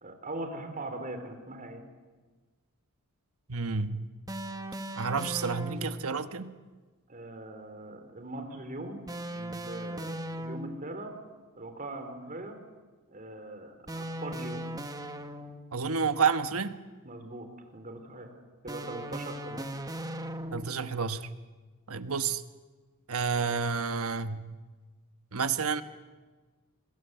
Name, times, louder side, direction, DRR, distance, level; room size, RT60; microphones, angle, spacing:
voice 1, 0.0-1.8 7.1-9.0 9.3-11.1 11.6-12.6 13.1-14.7 17.0-18.3 18.6-19.7, right 2 dB, 40° right, 6 dB, 3.8 m, -41 dB
voice 2, 3.5-4.1 5.0-6.5 15.7-16.8 20.5-21.3 21.9-22.4 23.1-24.5 25.3-25.8, right 5 dB, 70° right, 10 dB, 1.2 m, -30 dB
sound 1, 4.3-6.1 9.1-11.0 13.9-15.8 18.7-20.9, right 1 dB, 15° right, 1.3 m, -38 dB
25.0 x 21.5 x 8.2 m, 1.4 s
head